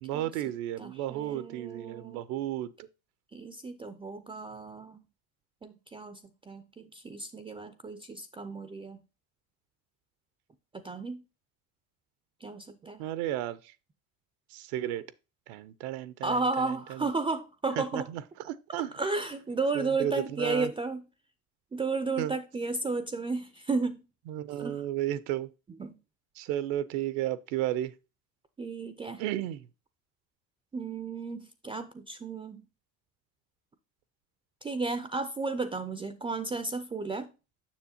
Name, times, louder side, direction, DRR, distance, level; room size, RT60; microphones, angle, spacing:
voice 1, 0.0-2.9 13.0-13.7 14.5-15.1 15.5-17.1 17.8-18.9 19.7-20.7 22.2-22.3 24.3-25.5 26.4-27.9 29.2-29.7, right 13 dB, 75° right, 0.6 m, -33 dB
voice 2, 0.8-2.2 3.3-5.0 5.6-9.0 10.7-11.2 12.4-13.0 16.2-18.1 18.8-21.0 21.7-24.0 24.6-24.8 25.8-26.0 28.6-29.2 30.7-32.7 34.6-37.3, right 3 dB, 15° right, 0.4 m, -33 dB
7.3 x 6.3 x 2.7 m
supercardioid pair, 110°, 38 cm